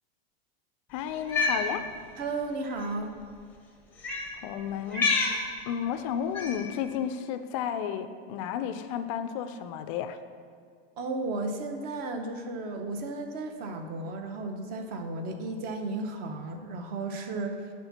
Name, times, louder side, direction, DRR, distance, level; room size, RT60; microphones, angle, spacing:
voice 1, 0.9-1.9 4.4-5.1 5.7-10.2, left 8 dB, 35° left, 10 dB, 0.4 m, -32 dB
Cat, 1.2-1.6 2.7-2.9 4.0-4.3 4.9-5.4 6.3-6.7, left 4 dB, 5° left, 0.8 m, -27 dB
voice 2, 2.2-3.1 11.0-17.6, right 2 dB, 30° right, 5 dB, 0.8 m, -34 dB
9.8 x 3.6 x 7.1 m, 2.2 s
supercardioid pair, 160°, 31 cm